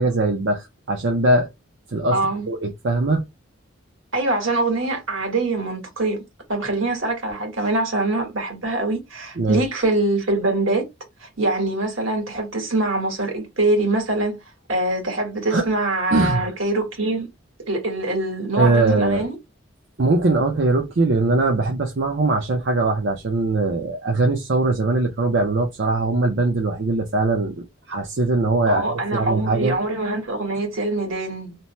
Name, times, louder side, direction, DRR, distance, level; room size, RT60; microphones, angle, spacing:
voice 1, 0.0-1.5 1.9-2.2 2.5-3.3 9.4-9.6 15.5-15.7 16.1-16.4 18.6-19.3 20.0-29.8, right 2 dB, 60° right, 0.6 m, -21 dB
voice 2, 2.1-2.5 4.1-6.2 6.5-10.9 11.2-14.4 14.7-17.3 17.7-19.4 28.7-31.6, right 2 dB, 80° right, 1.5 m, -23 dB
2.9 x 2.1 x 2.9 m
head